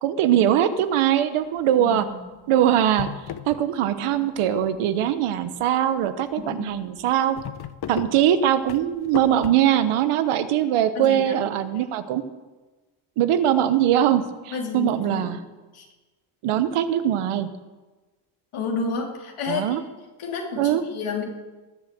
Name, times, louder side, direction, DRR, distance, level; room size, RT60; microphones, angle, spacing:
voice 1, 0.0-2.0 2.5-3.1 3.5-7.4 7.9-12.3 13.2-15.4 16.4-17.5 19.5-19.8 20.6-20.8, right 11 dB, 85° right, 11 dB, 1.2 m, -21 dB
sound 1, 1.6-1.9 2.4-2.5 2.8-4.1 4.4-5.0 5.6-5.7 6.0-6.1 6.4-6.5 6.8-9.5, left 9 dB, 50° left, 0.9 m, -35 dB
voice 2, 1.8-2.2 6.4-6.8 10.9-11.4 14.5-15.4 15.7-15.9 18.5-19.8 20.2-21.2, left 4 dB, 80° left, 0 dB, 3.3 m, -30 dB
20.0 x 7.9 x 7.6 m, 1.2 s
cardioid pair, 85°, 49 cm